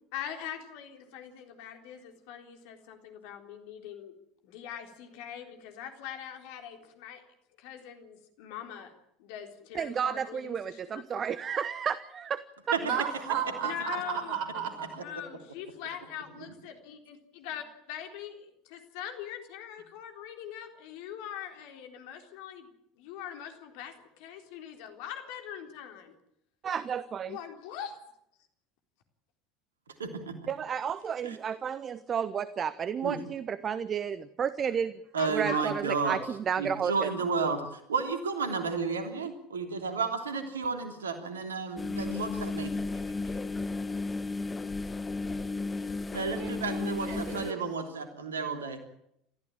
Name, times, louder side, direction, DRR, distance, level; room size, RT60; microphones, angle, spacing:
voice 1, 0.1-4.1 4.4-7.2 7.6-8.9 9.2-10.8 13.6-14.7 15.0-22.7 23.0-26.1 27.3-28.0 35.2-35.6, left 9 dB, 60° left, 6 dB, 3.8 m, -42 dB
voice 2, 9.7-12.8 26.6-27.4 30.5-37.1, right 7 dB, 35° right, 16 dB, 1.0 m, -32 dB
voice 3, 12.8-14.9 46.4-47.6, right 8 dB, 60° right, 8 dB, 6.4 m, -34 dB
voice 4, 30.0-30.3 31.2-31.4 33.0-33.2 35.1-36.2 36.6-42.7 46.1-48.8, right 4 dB, 80° right, 7 dB, 3.1 m, -32 dB
sound 1, 41.8-47.5, left 3 dB, 20° left, 1.5 m, -34 dB
29.0 x 14.5 x 8.8 m, 0.76 s
figure-of-eight pair, 70°, 0 cm